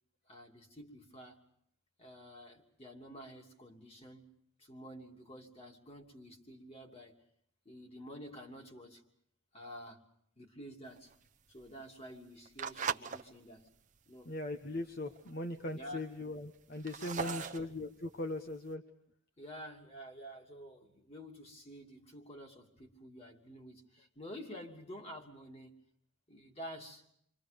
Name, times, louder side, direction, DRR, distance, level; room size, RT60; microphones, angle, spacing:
voice 1, 0.3-1.4 2.0-4.2 4.6-7.1 7.6-9.0 9.5-10.0 10.4-11.1 11.5-13.7 14.1-14.3 15.7-16.1 17.1-17.5 19.4-25.7 26.3-27.0, equal, 30° left, 1 dB, 2.9 m, -49 dB
sound 1, 10.9-13.2 13.7-14.0 14.5-14.6 14.8-14.9 15.1-15.6 16.1-18.7, right 6 dB, 35° right, 0.9 m, -40 dB
voice 2, 14.2-18.8, left 1 dB, 45° left, 4 dB, 1.2 m, -39 dB
29.0 x 25.0 x 5.3 m, 0.69 s
head